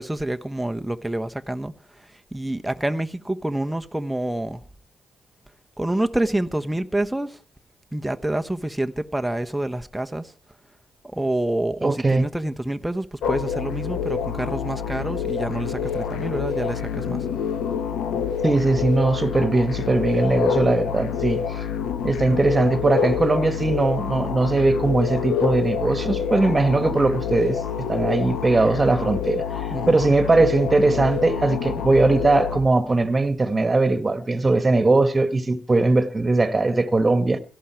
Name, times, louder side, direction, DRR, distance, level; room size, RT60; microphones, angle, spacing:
voice 1, 0.0-4.6 5.8-7.4 7.9-10.3 11.0-17.3 29.7-30.0, right 1 dB, 10° right, 1.2 m, -27 dB
voice 2, 11.8-12.3 18.4-21.4 22.0-27.6 27.9-29.4 29.9-37.4, right 2 dB, 25° right, 1.7 m, -20 dB
sound 1, 13.2-32.6, left 7 dB, 65° left, 1.3 m, -27 dB
17.5 x 14.0 x 4.7 m
hypercardioid pair, 40°, 0 cm